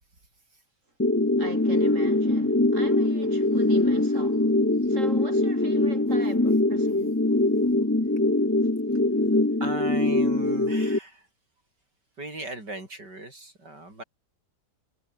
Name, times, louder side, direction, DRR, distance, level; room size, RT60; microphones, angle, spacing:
sound 1, 1.0-11.0, left 2 dB, 10° left, 0.7 m, -23 dB
voice 1, 1.4-4.5 4.9-7.2, right 2 dB, 45° right, 6.9 m, -40 dB
voice 2, 9.6-11.3 12.2-14.0, right 2 dB, 85° right, 8.5 m, -37 dB
omnidirectional pair, 1.8 m